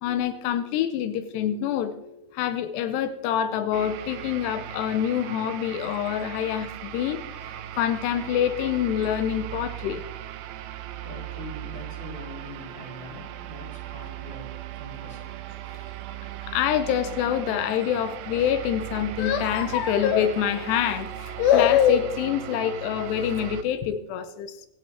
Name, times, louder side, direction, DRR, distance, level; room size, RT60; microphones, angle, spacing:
voice 1, 0.0-10.0 16.5-24.7, left 10 dB, 85° left, 10 dB, 2.8 m, -25 dB
sound 1, 3.7-23.6, right 12 dB, 80° right, 2.4 m, -38 dB
voice 2, 11.0-15.3, left 1 dB, 50° left, -3 dB, 5.2 m, -43 dB
25.5 x 11.0 x 3.4 m, 0.95 s
omnidirectional pair, 4.7 m